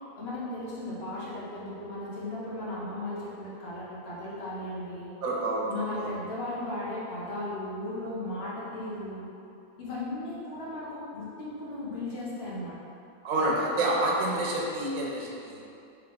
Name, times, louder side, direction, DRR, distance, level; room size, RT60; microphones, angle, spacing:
voice 1, 0.2-5.1 5.7-9.3 9.8-12.7, left 1 dB, 50° left, -7 dB, 1.1 m, -36 dB
voice 2, 5.2-6.1 13.2-15.6, right 2 dB, 85° right, -3 dB, 1.2 m, -28 dB
3.4 x 3.3 x 3.8 m, 2.6 s
omnidirectional pair, 1.4 m